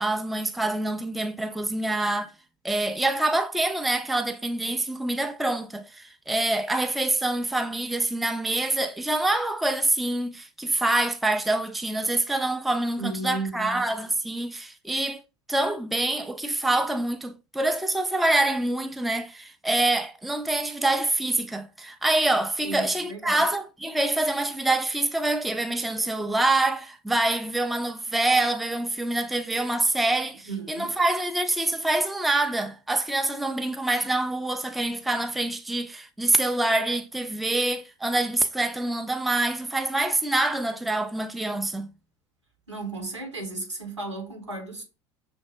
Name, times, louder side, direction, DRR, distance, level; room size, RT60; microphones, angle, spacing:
voice 1, 0.0-2.3 2.6-15.2 15.5-41.9, right 2 dB, ahead, 0.4 m, -26 dB
voice 2, 13.0-13.8 22.6-23.4 30.4-31.0 42.7-44.8, right 2 dB, 90° right, 1.2 m, -34 dB
6.2 x 2.6 x 2.4 m
figure-of-eight pair, 70°, 15 cm